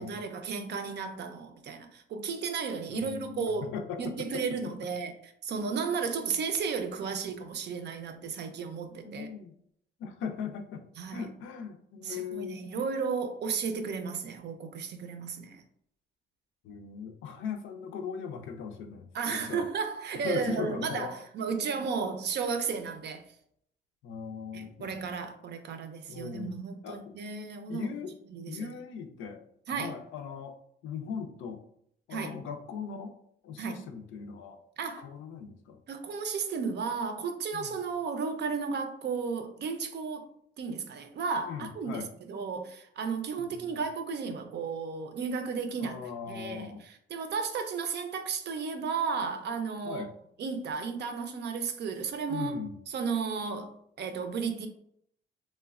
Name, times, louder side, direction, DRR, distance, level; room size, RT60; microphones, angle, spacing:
voice 1, 0.0-3.7 4.0-9.3 11.0-11.3 12.0-15.6 19.1-23.2 24.5-27.9 28.3-28.7 29.7-29.9 32.1-32.4 33.6-33.8 34.8-35.0 35.9-40.3 40.6-46.0 46.3-50.1 50.4-54.7, right 5 dB, 60° right, 0.5 m, -34 dB
voice 2, 2.9-4.4 9.0-9.5 10.0-12.8 16.6-19.7 20.2-21.1 21.8-21.9 24.0-25.1 26.1-26.5 26.8-27.2 27.7-28.2 28.5-29.4 29.7-31.6 32.1-33.2 33.4-34.6 35.0-35.8 37.5-37.7 41.5-42.1 43.4-43.8 45.8-46.8 49.8-50.1 52.3-52.8, left 6 dB, 80° left, 0.4 m, -39 dB
3.0 x 2.1 x 2.3 m
cardioid pair, 90°, 20 cm